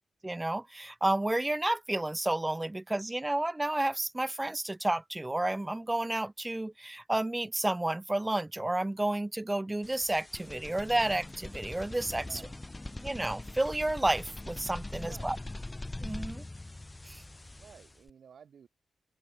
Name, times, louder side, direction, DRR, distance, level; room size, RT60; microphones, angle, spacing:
voice 1, 0.2-12.3 13.0-15.4 16.0-16.4 17.0-17.2, right 1 dB, 20° right, 0.4 m, -31 dB
sound 1, 9.8-18.1, left 2 dB, 25° left, 0.6 m, -42 dB
voice 2, 12.2-12.6 15.0-15.3 17.5-18.7, right 7 dB, 70° right, 4.0 m, -54 dB
open air
supercardioid pair, 45°, 0 cm